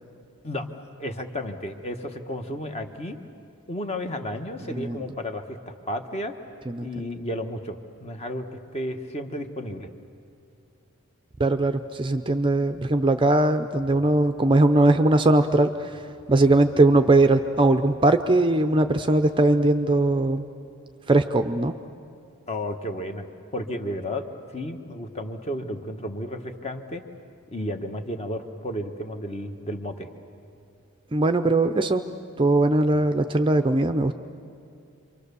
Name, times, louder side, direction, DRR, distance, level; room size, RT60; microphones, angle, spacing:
voice 1, 1.0-3.2 3.7-6.3 6.8-8.5 8.7-9.9 22.5-23.3 23.5-27.0 27.5-30.1 32.9-33.0, left 1 dB, 30° left, 6 dB, 1.2 m, -32 dB
voice 2, 11.4-15.9 16.3-20.4 21.1-21.7 31.1-32.0 32.4-34.1, right 2 dB, 20° right, 8 dB, 0.5 m, -20 dB
28.5 x 24.0 x 6.9 m, 2.5 s
head